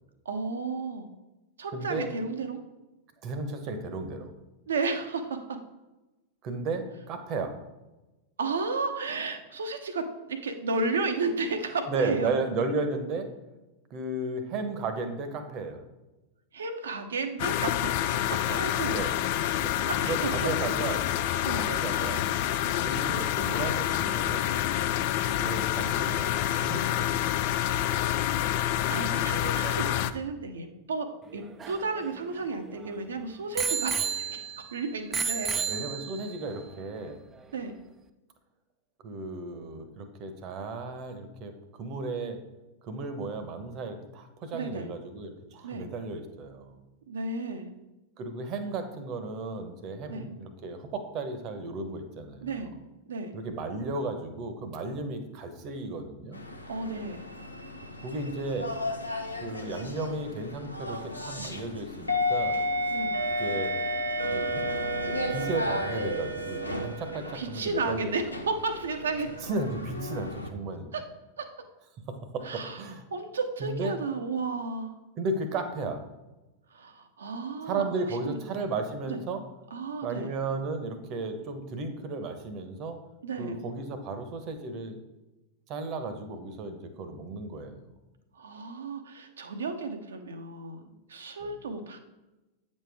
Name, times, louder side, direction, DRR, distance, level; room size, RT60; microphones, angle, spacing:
voice 1, 0.2-1.1 1.6-2.6 4.7-5.6 8.4-12.3 16.5-19.0 19.8-20.7 21.4-21.6 27.8-28.4 28.8-34.4 34.7-35.6 37.5-37.7 44.5-44.9 45.6-45.9 47.1-47.7 50.1-50.3 52.4-52.7 53.1-53.3 56.7-57.2 62.9-63.2 67.3-69.4 70.9-71.0 71.4-71.5 72.4-72.8 73.1-74.9 76.7-77.8 78.2-78.4 79.1-79.2 79.7-80.3 83.2-83.6 88.3-90.8 91.1-92.0, right 3 dB, 65° right, 7 dB, 0.8 m, -33 dB
voice 2, 1.7-2.1 3.2-4.3 6.4-7.5 11.9-13.3 13.9-15.8 18.3-18.6 18.9-19.1 19.6-21.1 21.5-22.3 22.8-24.6 25.3-27.4 35.6-37.2 39.0-41.5 41.8-42.4 42.8-46.8 48.2-52.7 53.3-56.4 58.0-58.7 59.4-62.6 63.4-63.8 64.3-64.6 65.0-68.1 69.4-70.9 72.1-73.0 73.6-74.0 75.2-76.0 77.6-79.4 80.0-83.0 83.4-85.0 85.7-87.9 91.4-91.5, right 3 dB, 40° right, 8 dB, 0.9 m, -34 dB
sound 1, 17.4-30.1, left 12 dB, 50° left, 0.3 m, -28 dB
Bicycle bell, 31.3-32.9 33.6-34.7 35.1-36.4 37.1-37.2, right 6 dB, 20° right, 0.4 m, -32 dB
sound 2, 56.3-70.5, equal, 85° left, 0.7 m, -33 dB
8.8 x 5.3 x 3.4 m, 1.1 s
figure-of-eight pair, 90°, 0 cm